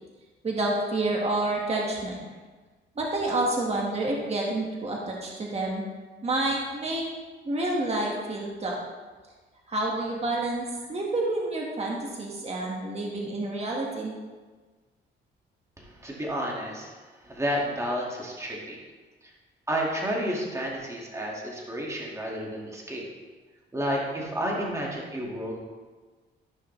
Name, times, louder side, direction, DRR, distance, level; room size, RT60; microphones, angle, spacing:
voice 1, 0.4-2.3 3.0-5.8 6.2-7.1 7.4-8.8 9.7-14.1, right 2 dB, 30° right, -2 dB, 1.9 m, -29 dB
voice 2, 15.8-18.8 19.2-19.3 19.7-23.1 23.7-25.6, equal, 15° right, -3 dB, 2.2 m, -31 dB
14.5 x 5.6 x 3.4 m, 1.3 s
cardioid pair, 90°, 20 cm